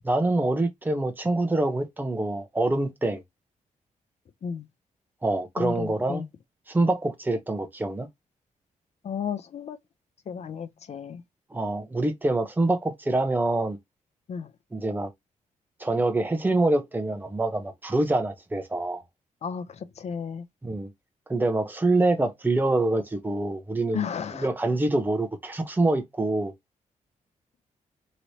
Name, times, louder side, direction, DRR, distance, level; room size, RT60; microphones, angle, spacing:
voice 1, 0.0-3.2 5.2-6.2 6.7-8.1 11.5-13.8 14.7-15.1 15.8-19.0 20.6-20.9 21.3-24.0 24.3-26.5, right 2 dB, 15° right, 0.8 m, -25 dB
voice 2, 5.6-6.3 9.0-9.8 10.3-11.2 14.3-14.5 19.4-20.5 23.9-24.5, left 6 dB, 50° left, 0.5 m, -33 dB
3.1 x 3.0 x 2.7 m
cardioid pair, 110°, 14 cm